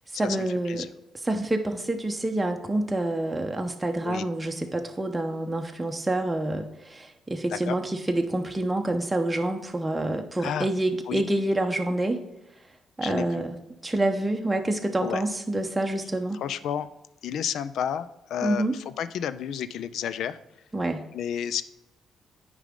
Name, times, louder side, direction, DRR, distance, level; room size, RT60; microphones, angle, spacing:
voice 1, 0.2-0.9 1.2-12.2 13.0-13.6 13.8-16.4 18.4-18.7 20.7-21.0, right 1 dB, 15° right, 3 dB, 0.7 m, -27 dB
voice 2, 13.0-13.4 15.0-15.2 16.3-16.9 17.2-20.4 21.1-21.6, left 9 dB, 75° left, 15 dB, 0.4 m, -31 dB
8.8 x 4.9 x 3.7 m, 0.97 s
cardioid pair, 90°, 0 cm